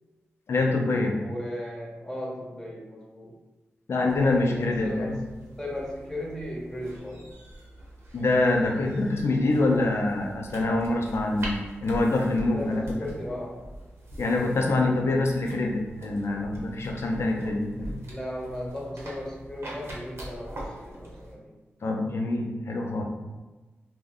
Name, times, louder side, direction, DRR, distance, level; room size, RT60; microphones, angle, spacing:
voice 1, 0.5-1.2 3.9-5.2 8.1-13.1 14.2-18.0 21.8-23.0, left 2 dB, 65° left, 1 dB, 0.5 m, -25 dB
voice 2, 1.2-3.3 3.9-5.2 5.6-7.3 12.5-13.6 18.1-21.5, left 1 dB, 10° left, -3 dB, 0.8 m, -36 dB
sound 1, 4.0-21.3, right 1 dB, 60° right, 0.8 m, -43 dB
2.6 x 2.1 x 3.5 m, 1.2 s
cardioid pair, 65°, 5 cm